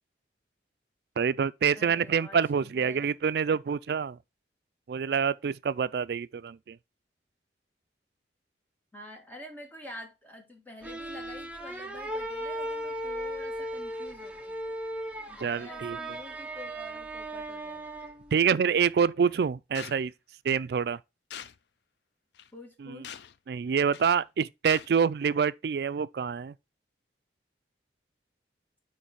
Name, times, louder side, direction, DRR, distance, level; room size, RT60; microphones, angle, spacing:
voice 1, 1.2-4.2 4.9-6.8 15.4-16.0 18.3-20.1 20.4-21.0 22.8-23.0 23.5-26.5, right 6 dB, 60° right, 0.3 m, -26 dB
voice 2, 1.7-3.1 5.8-5.9 8.9-14.6 15.3-18.1 22.5-23.1, left 1 dB, 10° left, 1.4 m, -48 dB
sound 1, 10.8-18.3, right 1 dB, 5° right, 0.6 m, -37 dB
sound 2, 19.7-20.0 21.3-21.6 22.3-22.5 23.0-23.4 23.9-24.2 24.7-24.9, left 9 dB, 70° left, 0.4 m, -43 dB
9.0 x 3.2 x 4.1 m
head